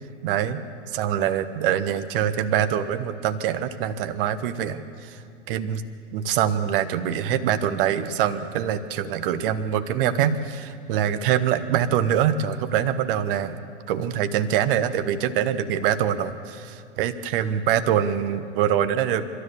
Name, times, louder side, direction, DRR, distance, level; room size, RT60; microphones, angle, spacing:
voice 1, 0.2-0.6 0.9-5.2 5.5-5.8 6.1-13.6 13.9-19.2, right 9 dB, 45° right, 11 dB, 1.3 m, -24 dB
29.5 x 13.5 x 7.2 m, 2.4 s
figure-of-eight pair, 105°, 38 cm